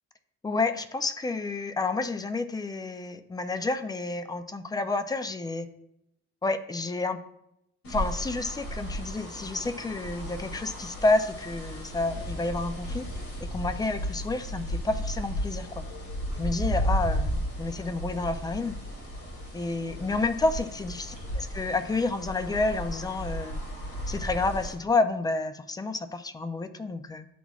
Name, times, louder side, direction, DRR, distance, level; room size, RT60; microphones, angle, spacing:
voice 1, 0.4-5.7 6.4-7.2 7.9-13.1 13.4-15.7 16.4-18.8 19.5-23.6 24.1-27.3, left 3 dB, 15° left, 9 dB, 0.4 m, -29 dB
Ambient Wind, 7.8-24.7, equal, 50° left, 2.4 m, -34 dB
11.5 x 4.0 x 2.3 m, 0.80 s
cardioid pair, 130°, 29 cm